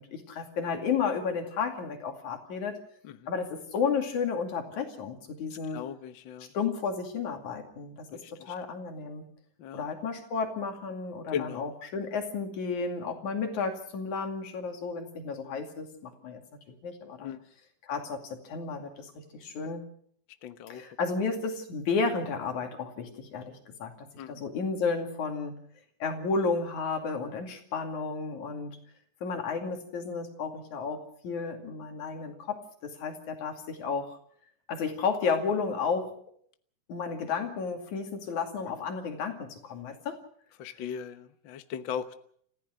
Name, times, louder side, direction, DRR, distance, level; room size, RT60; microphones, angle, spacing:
voice 1, 0.0-2.8 3.3-5.8 6.5-9.3 9.7-16.4 16.7-17.4 17.8-19.8 20.7-25.5 26.0-28.8 29.2-34.2 34.7-36.1 36.9-40.2, left 5 dB, 65° left, 5 dB, 3.8 m, -32 dB
voice 2, 5.5-6.5 8.1-8.5 9.6-9.9 11.3-11.7 17.2-17.4 20.4-20.8 24.2-24.4 38.7-38.8 40.6-42.1, left 8 dB, 80° left, 10 dB, 1.0 m, -38 dB
28.0 x 15.0 x 6.4 m, 0.62 s
omnidirectional pair, 3.8 m